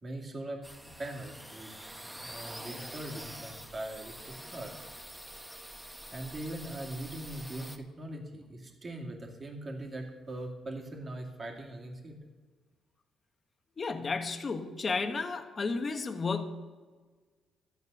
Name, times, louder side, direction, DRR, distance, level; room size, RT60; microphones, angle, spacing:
voice 1, 0.0-1.7 2.1-4.9 6.1-12.2, right 1 dB, 25° right, 1 dB, 2.4 m, -41 dB
sound 1, 0.6-7.8, right 1 dB, 5° right, 1.0 m, -46 dB
voice 2, 13.8-16.4, left 4 dB, 30° left, 8 dB, 1.1 m, -32 dB
13.5 x 9.3 x 6.8 m, 1.4 s
cardioid pair, 130°, 0 cm